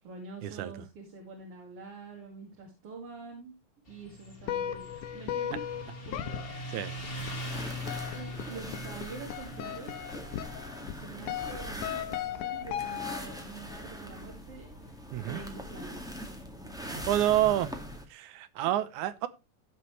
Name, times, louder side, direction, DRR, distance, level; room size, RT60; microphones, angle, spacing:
voice 1, 0.0-3.6 3.9-5.6 6.1-6.4 8.1-10.0 10.8-14.7 15.3-16.2, right 4 dB, 45° right, 3.2 m, -46 dB
Motorcycle, 3.9-15.0, equal, 20° left, 1.6 m, -43 dB
sound 1, 4.4-13.4, left 10 dB, 75° left, 2.3 m, -38 dB
sound 2, 7.2-18.0, equal, 5° right, 0.8 m, -42 dB
voice 2, 16.9-17.7 18.1-19.3, right 13 dB, 75° right, 2.1 m, -28 dB
16.5 x 6.2 x 3.2 m
omnidirectional pair, 3.8 m